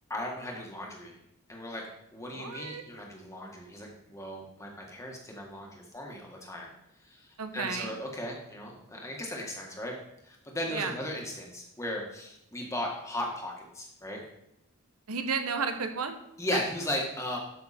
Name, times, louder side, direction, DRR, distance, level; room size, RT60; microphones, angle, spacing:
voice 1, 0.1-1.1 1.5-1.8 2.1-6.7 7.0-9.9 10.2-14.2 16.4-17.4, left 1 dB, 15° left, -1 dB, 1.7 m, -37 dB
voice 2, 2.4-2.8 7.4-7.9 10.7-10.9 15.1-16.2 16.5-16.6, right 5 dB, 85° right, 7 dB, 1.0 m, -32 dB
12.5 x 5.9 x 4.2 m, 0.82 s
head